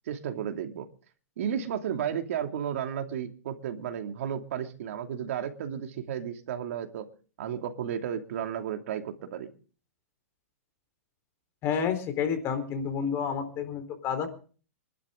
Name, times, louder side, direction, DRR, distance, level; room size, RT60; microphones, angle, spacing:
voice 1, 0.1-0.9 1.4-7.1 7.4-9.5, right 9 dB, 65° right, 5 dB, 2.7 m, -33 dB
voice 2, 11.6-14.3, left 7 dB, 30° left, 9 dB, 4.2 m, -29 dB
26.0 x 12.0 x 3.9 m, 0.40 s
hypercardioid pair, 130°, 8 cm